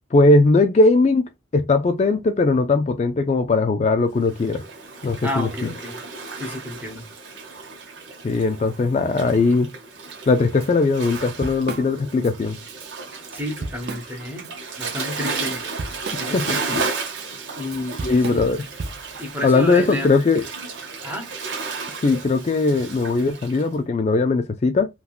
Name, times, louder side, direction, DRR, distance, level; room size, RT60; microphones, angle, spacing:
voice 1, 0.1-4.6 5.0-5.7 8.2-9.7 10.3-12.6 16.3-16.8 18.0-18.7 19.4-20.5 22.0-24.9, left 3 dB, 35° left, 0.3 m, -19 dB
Waves surf, 4.2-23.7, right 4 dB, 75° right, 0.9 m, -34 dB
voice 2, 5.2-6.0 6.4-7.0 13.3-14.5 14.8-15.6 16.2-16.8 17.6-18.5 19.2-20.1 21.0-21.3, left 1 dB, 10° right, 0.9 m, -31 dB
Drum kit / Drum, 10.6-10.7 11.0-12.3 12.7-12.9 13.2-14.5 14.9-19.2, right 3 dB, 55° right, 0.4 m, -34 dB
3.5 x 2.3 x 2.3 m
head